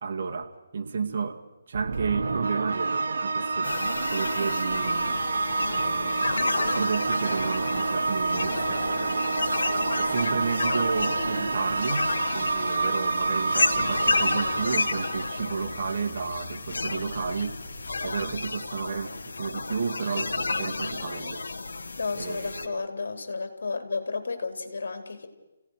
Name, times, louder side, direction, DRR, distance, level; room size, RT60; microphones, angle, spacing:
voice 1, 0.0-1.4 1.7-3.7 4.1-5.2 5.7-8.9 9.9-17.6 18.0-21.5 22.2-22.8, right 5 dB, 45° right, 3 dB, 2.2 m, -32 dB
sound 1, 1.7-16.1, right 3 dB, 65° right, 1.6 m, -28 dB
sound 2, 3.6-22.7, left 3 dB, 85° left, 1.9 m, -31 dB
sound 3, 10.6-18.4, left 2 dB, 15° left, 7.0 m, -48 dB
voice 2, 22.0-25.3, left 4 dB, 70° left, 8 dB, 3.9 m, -32 dB
29.0 x 17.5 x 6.5 m, 1.0 s
hypercardioid pair, 165°, 0 cm